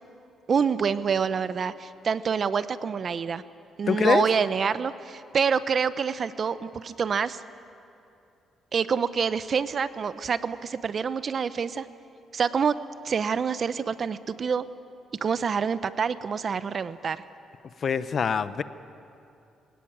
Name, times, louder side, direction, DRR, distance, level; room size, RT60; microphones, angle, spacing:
voice 1, 0.5-3.4 3.8-7.4 8.7-11.9 12.3-12.8 13.0-14.6 15.2-17.2, right 6 dB, 50° right, 14 dB, 0.8 m, -26 dB
voice 2, 3.9-4.2 17.8-18.6, left 6 dB, 50° left, 14 dB, 0.8 m, -24 dB
23.5 x 17.5 x 8.9 m, 2.6 s
cardioid pair, 90°, 0 cm